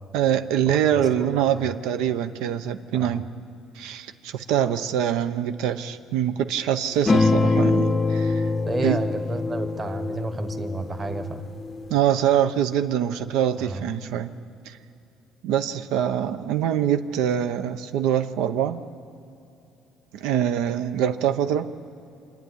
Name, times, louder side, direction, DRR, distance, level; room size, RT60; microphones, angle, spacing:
voice 1, 0.1-3.3 3.8-8.5 8.8-9.0 11.9-14.3 14.7-14.8 15.4-18.8 20.1-21.7, right 10 dB, 85° right, 9 dB, 0.8 m, -24 dB
voice 2, 0.7-1.4 2.9-3.2 8.7-11.4 13.6-13.8, right 2 dB, 20° right, 7 dB, 1.1 m, -31 dB
sound 1, 7.1-12.0, left 3 dB, 20° left, 0.6 m, -24 dB
26.5 x 10.5 x 9.7 m, 2.9 s
cardioid pair, 170°, 0 cm